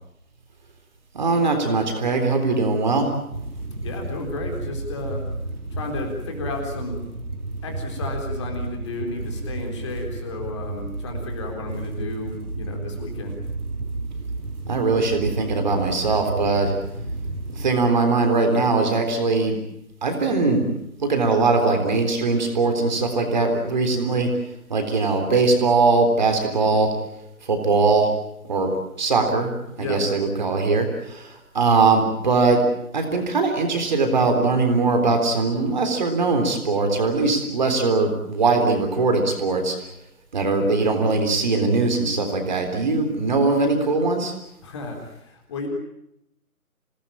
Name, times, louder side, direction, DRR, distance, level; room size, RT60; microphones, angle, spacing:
voice 1, 1.1-3.1 14.7-16.7 17.5-19.6 20.0-20.7 21.0-24.3 24.7-26.9 27.4-28.1 28.5-28.7 29.0-29.5 29.8-32.6 32.9-39.8 40.3-44.3, right 3 dB, 30° right, 5 dB, 3.6 m, -21 dB
sound 1, 3.3-17.7, right 2 dB, 85° right, 3.8 m, -32 dB
voice 2, 3.8-5.2 5.7-7.0 7.6-13.4 29.8-30.0 44.6-45.7, left 2 dB, 20° left, 2 dB, 4.0 m, -33 dB
27.5 x 19.0 x 8.8 m, 0.80 s
figure-of-eight pair, 160°, 44 cm